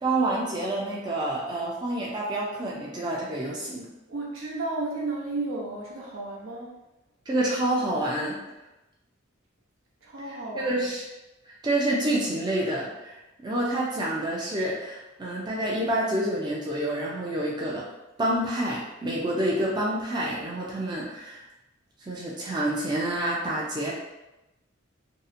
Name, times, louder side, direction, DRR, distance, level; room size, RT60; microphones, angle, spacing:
voice 1, 0.0-3.9 7.3-8.4 10.5-11.0 11.6-13.2 13.4-17.8 18.2-21.4 22.1-23.9, right 1 dB, 20° right, -5 dB, 0.4 m, -28 dB
voice 2, 4.1-6.7 10.0-10.9, right 2 dB, 75° right, -3 dB, 0.6 m, -33 dB
2.7 x 2.0 x 2.5 m, 0.97 s
head